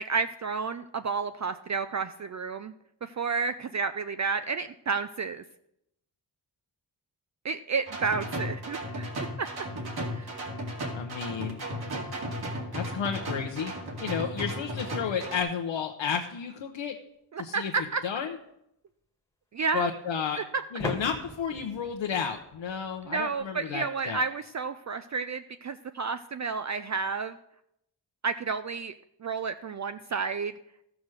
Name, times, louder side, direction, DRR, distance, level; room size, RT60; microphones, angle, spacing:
voice 1, 0.0-2.7 3.0-5.4 7.4-9.1 9.4-9.5 10.1-10.4 17.3-18.0 19.5-19.9 20.4-20.5 23.1-27.4 28.2-28.9 29.2-30.5, right 5 dB, 40° right, 10 dB, 0.4 m, -31 dB
sound 1, 7.9-15.4, equal, 55° right, 2.4 m, -35 dB
voice 2, 10.9-11.6 12.7-13.7 14.0-17.0 17.4-17.7 18.0-18.4 19.7-20.4 20.7-24.2, left 7 dB, 85° left, 2 dB, 0.9 m, -32 dB
sound 2, 20.8-23.4, left 1 dB, 5° left, 1.4 m, -39 dB
13.5 x 6.1 x 6.4 m, 0.80 s
wide cardioid pair, 110°, 44 cm